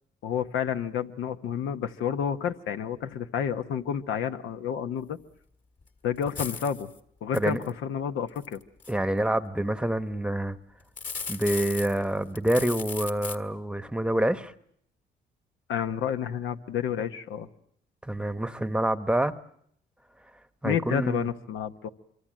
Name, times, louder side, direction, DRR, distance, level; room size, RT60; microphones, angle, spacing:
voice 1, 0.2-5.2 6.0-6.9 7.2-8.6 15.7-17.5 20.6-21.9, left 8 dB, 80° left, 1.1 m, -30 dB
sound 1, 5.8-5.9 6.2-6.8 7.3-7.7 8.4-8.9 10.8-12.0 12.4-13.4, left 5 dB, 40° left, 1.9 m, -36 dB
voice 2, 8.9-10.6 11.3-14.5 18.0-19.3 20.6-21.3, right 1 dB, 5° right, 0.9 m, -27 dB
25.0 x 24.0 x 7.5 m
cardioid pair, 90°, 20 cm